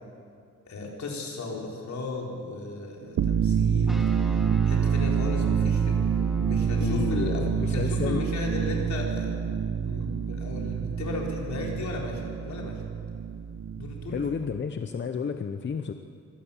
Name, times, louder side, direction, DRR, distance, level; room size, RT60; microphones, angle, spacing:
voice 1, 0.7-4.0 4.6-6.0 6.4-9.3 9.8-12.8 13.8-14.2, left 2 dB, 70° left, -1 dB, 4.5 m, -35 dB
sound 1, 3.1-14.6, right 7 dB, 70° right, 0.9 m, -27 dB
sound 2, 3.9-14.5, right 1 dB, ahead, 1.7 m, -45 dB
voice 2, 6.8-8.2 14.1-15.9, left 6 dB, 40° left, 7 dB, 0.8 m, -30 dB
24.5 x 18.0 x 7.3 m, 2.2 s
wide cardioid pair, 170°, 29 cm